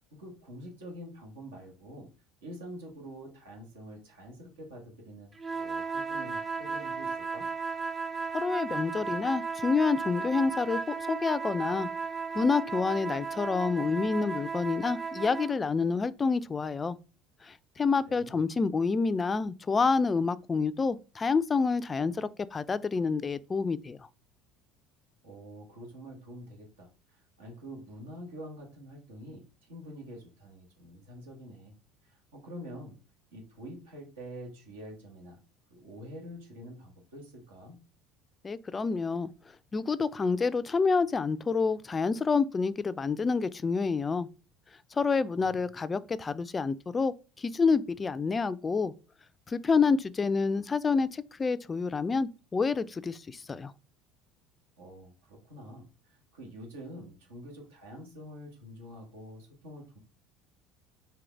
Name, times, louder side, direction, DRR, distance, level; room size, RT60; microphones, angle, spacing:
voice 1, 0.2-2.1 2.4-7.5 18.1-18.4 25.2-31.7 32.0-33.0 33.3-35.4 35.7-37.8 45.2-45.7 54.8-60.0, equal, 85° right, 1.3 m, -46 dB
sound 1, 5.4-15.6, right 5 dB, 25° right, 0.5 m, -35 dB
voice 2, 8.3-11.9 12.3-17.0 17.5-24.0 38.4-39.3 39.7-44.3 44.9-47.1 47.4-48.9 49.5-53.7, left 4 dB, 25° left, 0.3 m, -28 dB
3.8 x 2.8 x 3.4 m
hypercardioid pair, 70°, 0 cm